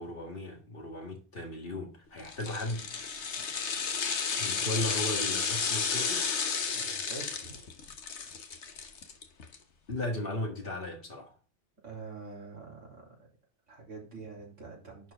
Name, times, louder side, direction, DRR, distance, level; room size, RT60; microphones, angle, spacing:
voice 1, 0.0-3.1 4.3-6.4 9.9-11.3, left 1 dB, 50° left, 2.1 m, -36 dB
sound 1, 2.2-9.6 9.9-10.0, left 5 dB, 70° left, 1.4 m, -32 dB
voice 2, 4.5-4.8 6.7-7.6 11.8-13.3 13.7-15.1, right 4 dB, 90° right, 3.8 m, -45 dB
10.5 x 4.6 x 3.7 m
omnidirectional pair, 1.2 m